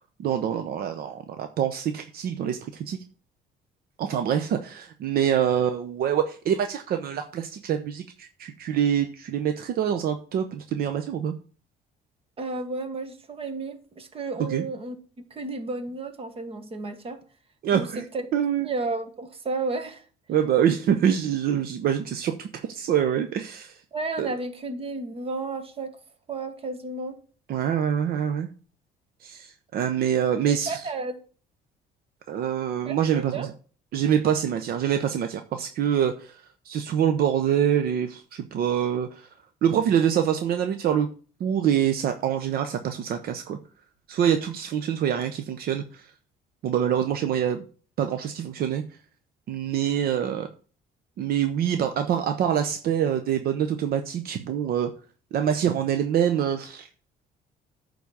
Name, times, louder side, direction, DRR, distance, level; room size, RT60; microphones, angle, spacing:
voice 1, 0.2-3.0 4.0-11.3 14.4-14.6 17.6-18.1 18.3-18.7 20.3-23.8 24.2-24.3 27.5-28.5 29.2-30.9 32.3-33.5 33.9-39.3 39.6-41.1 41.4-43.6 44.1-46.1 46.6-47.6 48.0-48.8 49.5-50.5 51.2-54.9 55.3-56.9, right 9 dB, 65° right, 0.8 m, -25 dB
voice 2, 12.4-14.9 15.3-17.2 17.7-18.2 18.6-20.0 23.9-26.0 26.3-27.2 30.4-31.2 32.9-33.5, right 3 dB, 35° right, 1.5 m, -32 dB
9.4 x 4.0 x 7.1 m
cardioid pair, 110°, 17 cm